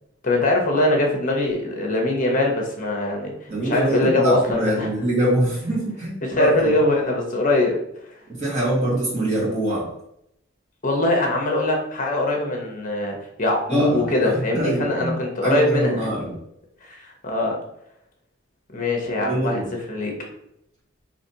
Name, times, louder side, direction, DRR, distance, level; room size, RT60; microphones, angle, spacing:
voice 1, 0.2-4.9 6.2-7.8 10.8-16.1 16.9-17.6 18.7-19.6 19.9-20.2, left 2 dB, 35° left, 1 dB, 0.9 m, -22 dB
voice 2, 3.5-6.5 8.3-9.9 13.7-15.1 15.4-16.3 19.3-19.7, right 1 dB, 30° right, -8 dB, 1.5 m, -24 dB
5.0 x 2.9 x 2.8 m, 0.77 s
head